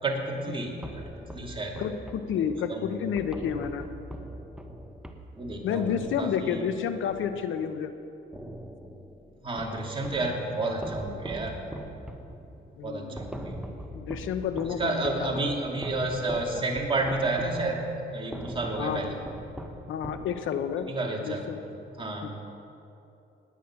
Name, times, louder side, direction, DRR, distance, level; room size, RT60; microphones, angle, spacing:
voice 1, 0.0-1.8 2.7-2.9 5.4-6.7 9.4-11.5 12.8-13.6 14.8-17.8 18.1-19.1 20.8-21.5 22.0-22.3, right 2 dB, 25° right, -1 dB, 2.6 m, -31 dB
sound 1, 0.8-7.9 8.3-10.3 10.8-20.7, right 1 dB, 5° right, 1.2 m, -42 dB
voice 2, 1.8-3.9 5.6-7.9 12.8-13.2 13.9-15.5 18.8-19.1 19.9-20.9 21.2-21.6 22.2-22.3, left 8 dB, 80° left, 9 dB, 1.0 m, -30 dB
18.5 x 9.5 x 5.9 m, 2.8 s
cardioid pair, 90°, 20 cm